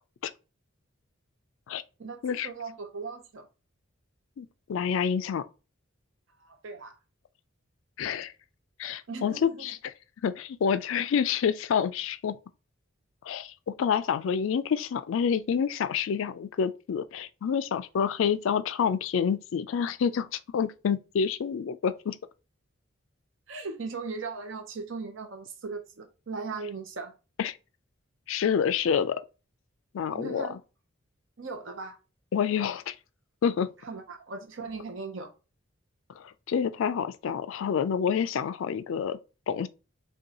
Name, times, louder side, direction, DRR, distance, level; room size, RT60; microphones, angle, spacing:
voice 1, 2.0-3.5 6.4-7.0 9.1-9.7 23.5-27.1 30.1-30.6 31.4-32.0 33.8-35.3, right 4 dB, 70° right, 0.7 m, -38 dB
voice 2, 4.4-5.5 8.0-8.3 8.8-9.9 10.2-12.4 13.2-22.2 27.4-27.6 28.3-29.2 29.9-30.6 32.3-33.0 33.4-33.7 36.1-39.2 39.5-39.7, left 7 dB, 70° left, 0.3 m, -28 dB
5.2 x 2.3 x 2.8 m
head